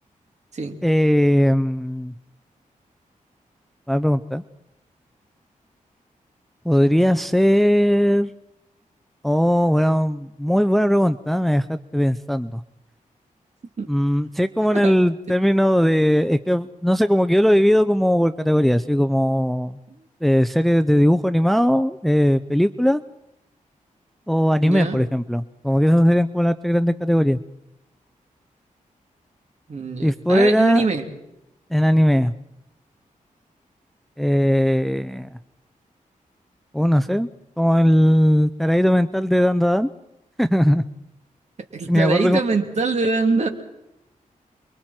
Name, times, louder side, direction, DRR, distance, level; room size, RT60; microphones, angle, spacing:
voice 1, 0.8-2.1 3.9-4.4 6.6-8.3 9.2-12.6 13.9-19.8 20.2-23.0 24.3-27.4 30.0-30.9 31.7-32.3 34.2-35.3 36.7-37.3 37.6-39.9 40.4-40.8 41.9-42.4, equal, ahead, 11 dB, 0.7 m, -19 dB
voice 2, 24.5-25.0 29.7-31.0 41.7-43.5, right 3 dB, 55° right, 4 dB, 3.4 m, -23 dB
29.0 x 23.5 x 4.5 m, 0.85 s
wide cardioid pair, 85°, 14 cm